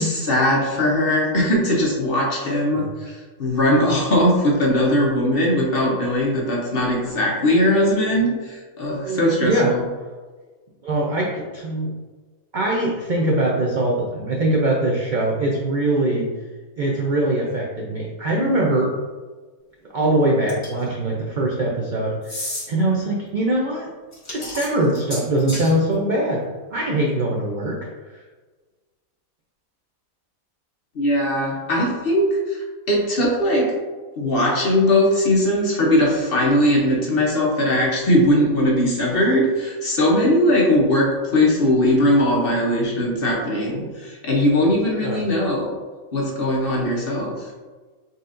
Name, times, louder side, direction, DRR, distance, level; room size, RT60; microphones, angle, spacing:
voice 1, 0.0-9.8 30.9-33.7 34.2-45.7 46.1-47.5, left 1 dB, 50° left, -3 dB, 0.9 m, -20 dB
voice 2, 9.0-9.7 10.8-11.9 12.5-16.3 16.8-18.9 19.9-22.3 22.7-23.9 24.3-26.4 26.7-27.7 45.0-45.2 46.8-46.9, right 1 dB, 60° right, -3 dB, 0.5 m, -22 dB
sound 1, 20.5-20.9 22.2-22.7 24.1-25.7, left 1 dB, 20° left, 1.6 m, -31 dB
4.0 x 4.0 x 2.5 m, 1.4 s
omnidirectional pair, 1.5 m